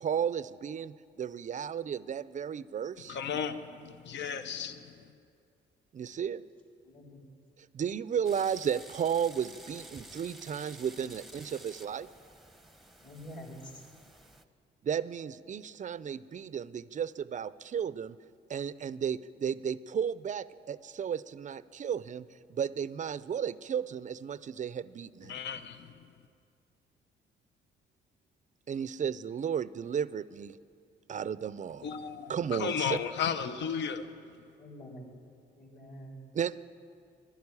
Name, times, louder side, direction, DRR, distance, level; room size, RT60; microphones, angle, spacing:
voice 1, 0.0-3.2 5.9-6.4 7.6-12.1 14.8-18.2 18.5-25.4 28.7-30.6 31.1-31.9 32.3-33.0 36.3-36.6, right 8 dB, 40° right, 0.5 m, -34 dB
voice 2, 3.1-5.1 25.3-26.0 31.8-34.1, left 7 dB, 65° left, 0.8 m, -34 dB
voice 3, 6.8-7.2 13.0-13.8 34.6-35.0 35.5-36.2, equal, 45° left, 4.0 m, -47 dB
sound 1, 8.3-14.4, right 1 dB, ahead, 0.9 m, -52 dB
12.0 x 11.5 x 9.7 m
cardioid pair, 90°, 20 cm